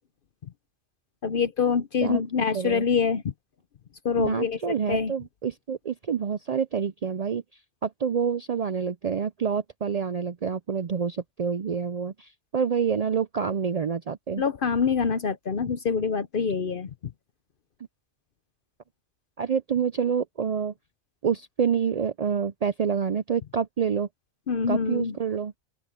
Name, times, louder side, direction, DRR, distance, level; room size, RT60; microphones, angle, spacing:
voice 1, 1.2-3.3 4.0-5.1 14.4-17.1 24.5-25.2, left 6 dB, 55° left, 0.8 m, -25 dB
voice 2, 2.5-2.8 4.2-7.4 7.8-14.4 19.4-20.7 21.2-24.1 24.7-25.5, right 7 dB, 60° right, 0.4 m, -27 dB
open air
omnidirectional pair, 1.2 m